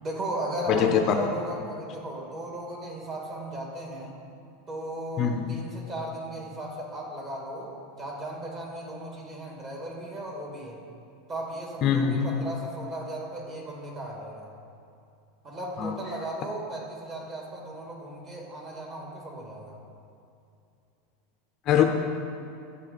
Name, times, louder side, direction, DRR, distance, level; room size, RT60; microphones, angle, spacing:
voice 1, 0.0-4.1 4.7-10.8 11.3-14.5 15.4-19.8, right 1 dB, 25° right, -1 dB, 2.1 m, -36 dB
voice 2, 0.7-1.1 5.2-5.5 11.8-12.3 15.8-16.0 21.7-21.8, left 8 dB, 35° left, 4 dB, 0.6 m, -23 dB
13.5 x 7.6 x 4.1 m, 2.6 s
supercardioid pair, 160°, 0 cm